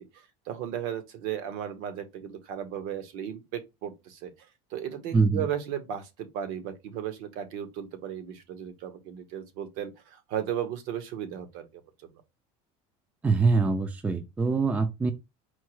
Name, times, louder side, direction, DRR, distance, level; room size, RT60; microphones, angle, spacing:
voice 1, 0.1-11.7, right 9 dB, 70° right, 1.0 m, -35 dB
voice 2, 5.1-5.5 13.2-15.1, right 4 dB, 10° right, 0.4 m, -24 dB
4.5 x 2.0 x 4.5 m
cardioid pair, 160°, 15 cm